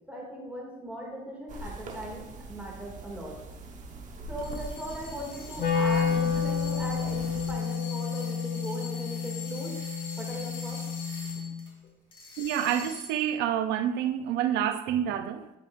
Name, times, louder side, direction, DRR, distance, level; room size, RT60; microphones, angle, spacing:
voice 1, 0.1-3.3 4.3-9.7 10.2-10.8, equal, 10° right, 2.3 m, -39 dB
sound 1, 1.5-7.5, right 3 dB, 50° right, 1.1 m, -42 dB
sound 2, 4.4-11.7 12.1-13.3, left 4 dB, 30° left, 2.5 m, -44 dB
Wind instrument woodwind instrument, 5.6-11.7, left 6 dB, 55° left, 1.9 m, -30 dB
voice 2, 12.4-15.5, right 10 dB, 85° right, 0.5 m, -28 dB
11.0 x 5.1 x 2.5 m
cardioid pair, 110°, 17 cm